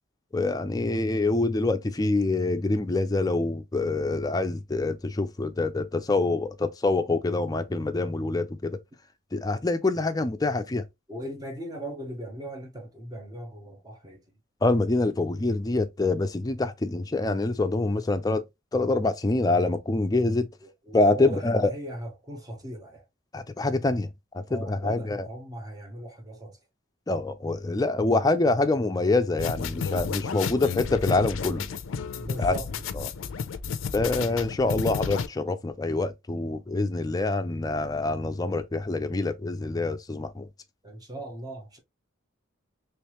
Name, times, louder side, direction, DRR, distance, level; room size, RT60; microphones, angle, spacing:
voice 1, 0.3-8.8 9.3-10.8 14.6-18.5 18.7-20.5 20.9-21.7 23.3-25.3 27.1-31.7 32.4-32.6 32.9-33.1 33.9-40.5, left 2 dB, 20° left, 0.4 m, -26 dB
voice 2, 11.1-14.2 14.8-15.0 20.6-23.0 24.5-26.6 32.2-32.8 40.8-41.8, right 1 dB, 20° right, 0.8 m, -39 dB
sound 1, 29.4-35.3, left 6 dB, 85° left, 0.4 m, -32 dB
3.3 x 3.1 x 2.9 m
head